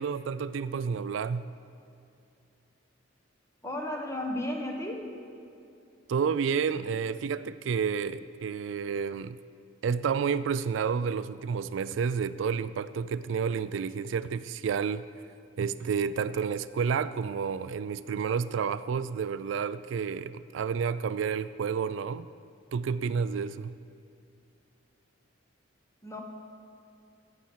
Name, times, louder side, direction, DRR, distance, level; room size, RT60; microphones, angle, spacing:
voice 1, 0.0-1.5 6.1-9.4 9.8-15.1 15.6-22.3 22.7-23.8, right 6 dB, 75° right, 0.3 m, -30 dB
voice 2, 3.6-5.1 26.0-26.2, left 1 dB, 15° left, 1.4 m, -33 dB
11.5 x 8.5 x 7.4 m
head